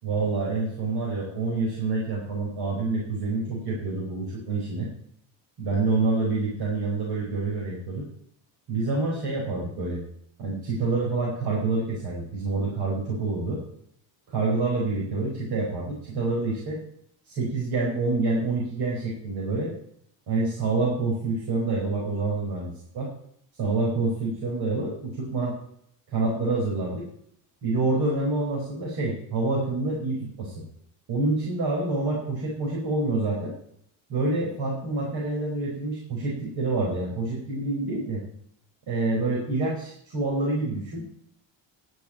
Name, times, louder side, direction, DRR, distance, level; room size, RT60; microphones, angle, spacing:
voice 1, 0.0-4.9 5.6-8.1 8.7-10.0 10.4-13.6 14.3-16.8 17.3-19.7 20.3-23.1 23.6-25.5 26.1-27.1 27.6-30.6 31.1-33.5 34.1-38.2 38.9-41.0, right 3 dB, 55° right, -4 dB, 4.6 m, -27 dB
10.5 x 6.9 x 8.7 m, 0.68 s
cardioid pair, 155°, 46 cm